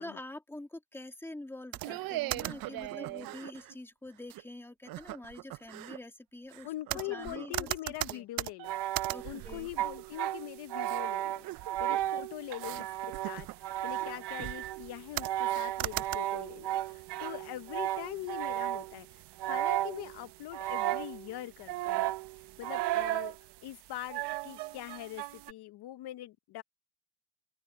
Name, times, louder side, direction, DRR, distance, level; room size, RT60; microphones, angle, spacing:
voice 1, 0.0-7.7 8.1-8.3 9.1-9.7, left 1 dB, 5° left, 2.0 m, -46 dB
sound 1, 1.7-3.8 4.3-4.4 4.9-6.0 6.5-10.3 10.8-11.0 11.4-12.1 12.6-12.8 13.1-14.1 14.4-14.9 15.2-16.2, right 18 dB, 60° right, 0.5 m, -38 dB
voice 2, 6.6-8.8 9.2-22.1 22.6-23.4 23.6-26.6, left 15 dB, 70° left, 0.9 m, -43 dB
sound 2, 8.6-19.0 19.4-20.2 20.5-21.3 21.7-23.3 24.1-25.5, right 14 dB, 80° right, 0.9 m, -34 dB
cardioid pair, 145°, 40 cm